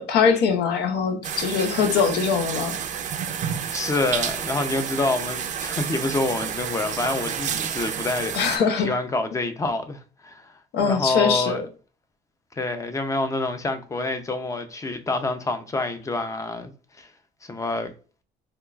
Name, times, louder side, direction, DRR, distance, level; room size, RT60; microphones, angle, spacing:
voice 1, 0.0-2.8 8.3-9.0 10.7-11.6, left 6 dB, 75° left, 0.7 m, -22 dB
sound 1, 1.2-8.6, right 8 dB, 45° right, 0.4 m, -30 dB
voice 2, 3.5-10.5 10.8-11.6 12.6-16.7 17.0-17.1 17.5-17.9, left 2 dB, 20° left, 0.5 m, -27 dB
3.6 x 2.4 x 2.3 m
cardioid pair, 110°, 17 cm